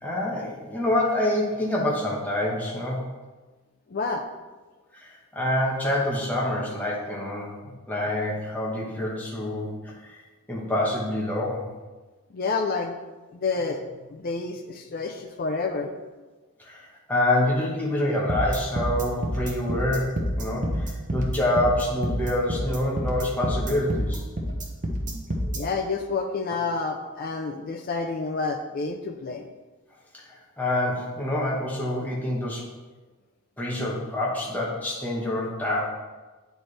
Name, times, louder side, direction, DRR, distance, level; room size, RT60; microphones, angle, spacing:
voice 1, 0.0-3.0 4.9-7.5 7.9-9.7 10.0-10.2 10.5-11.7 16.6-24.2 30.1-30.2 30.6-32.6 33.6-35.8, left 1 dB, 10° left, -5 dB, 1.1 m, -26 dB
voice 2, 3.9-4.2 12.3-12.9 13.4-13.8 14.1-15.9 19.7-19.8 25.5-29.5, left 4 dB, 40° left, 4 dB, 0.4 m, -29 dB
sound 1, 18.3-25.6, equal, 35° right, 0.9 m, -28 dB
9.0 x 4.4 x 3.3 m, 1.2 s
head